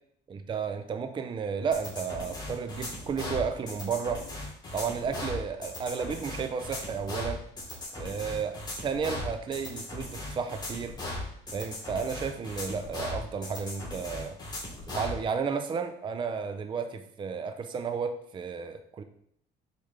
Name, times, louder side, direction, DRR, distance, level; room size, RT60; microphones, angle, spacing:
voice 1, 0.3-4.2 4.7-7.4 8.0-10.9 11.5-14.4 14.9-19.0, right 6 dB, 30° right, 8 dB, 0.5 m, -33 dB
sound 1, 1.7-15.2, left 2 dB, 25° left, 2.4 m, -38 dB
6.5 x 4.8 x 3.3 m, 0.70 s
cardioid pair, 110°, 17 cm